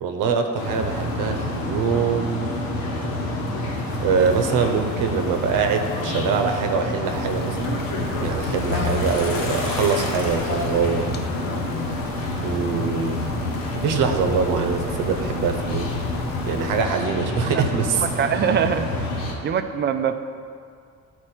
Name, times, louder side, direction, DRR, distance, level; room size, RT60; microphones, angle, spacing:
voice 1, 0.0-2.4 3.0-3.1 4.0-7.7 8.2-11.1 12.4-13.2 13.8-15.9 16.5-18.1, right 5 dB, 80° right, 5 dB, 0.9 m, -23 dB
sound 1, 0.5-19.3, left 2 dB, 85° left, 1.4 m, -27 dB
sound 2, 7.0-16.8, left 6 dB, 30° left, 0.4 m, -40 dB
voice 2, 18.2-18.9 19.4-20.2, right 8 dB, 35° right, 9 dB, 0.4 m, -22 dB
11.5 x 4.4 x 4.4 m, 2.2 s
cardioid pair, 135°, 32 cm